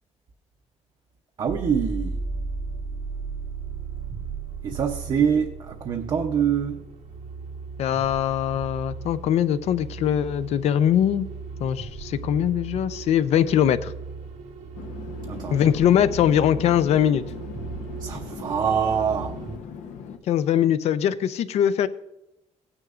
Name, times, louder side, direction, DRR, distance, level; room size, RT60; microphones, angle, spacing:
voice 1, 1.4-2.2 4.6-6.8 15.3-15.6 18.0-19.4, right 7 dB, 40° right, 0.7 m, -25 dB
sound 1, 1.5-19.6, right 4 dB, 80° right, 1.5 m, -36 dB
voice 2, 7.8-11.3 11.6-13.9 15.5-17.2 20.3-21.9, left 10 dB, 65° left, 0.5 m, -21 dB
Chatter / Fixed-wing aircraft airplane, 14.7-20.2, left 7 dB, 85° left, 0.9 m, -40 dB
17.0 x 9.7 x 2.5 m
cardioid pair, 175°, 12 cm